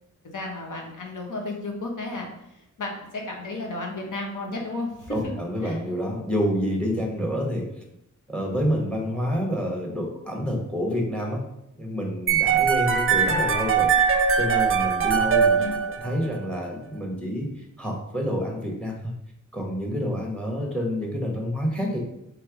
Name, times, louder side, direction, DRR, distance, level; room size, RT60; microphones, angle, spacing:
voice 1, 0.2-5.3 5.6-5.8 15.6-15.8, left 2 dB, 70° left, 0 dB, 1.0 m, -33 dB
voice 2, 5.1-7.7 8.3-11.4 11.8-13.9 14.4-15.8 16.0-19.1 19.5-22.0, equal, 5° left, 0 dB, 1.1 m, -28 dB
sound 1, 12.3-16.4, right 6 dB, 40° right, 0.5 m, -21 dB
3.3 x 3.3 x 4.8 m, 0.84 s
wide cardioid pair, 115°, 32 cm